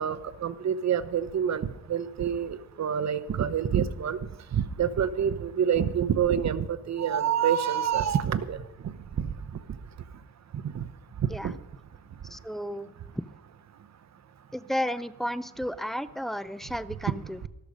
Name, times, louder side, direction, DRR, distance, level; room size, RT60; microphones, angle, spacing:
voice 1, 0.0-4.2 4.5-8.6 9.2-9.3 10.6-10.9 11.4-11.5, right 8 dB, 65° right, 14 dB, 0.8 m, -27 dB
voice 2, 12.3-13.2 14.5-17.4, equal, ahead, 14 dB, 0.5 m, -33 dB
13.5 x 12.0 x 5.1 m, 0.92 s
wide cardioid pair, 115°, 30 cm